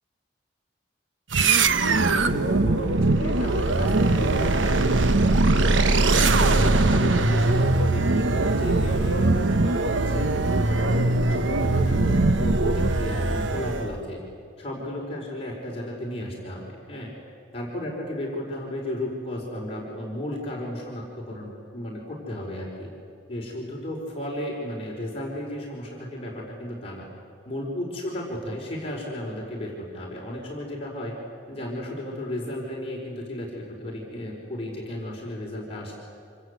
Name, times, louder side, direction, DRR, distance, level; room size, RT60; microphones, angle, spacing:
sound 1, 1.3-14.0, right 2 dB, 85° right, 1.1 m, -21 dB
voice 1, 1.9-6.0 6.4-10.3 10.7-14.2 14.6-17.1 17.5-22.9 23.3-27.0 27.4-31.1 31.5-36.0, left 1 dB, 30° left, -2 dB, 4.8 m, -34 dB
27.5 x 26.0 x 8.2 m, 2.5 s
head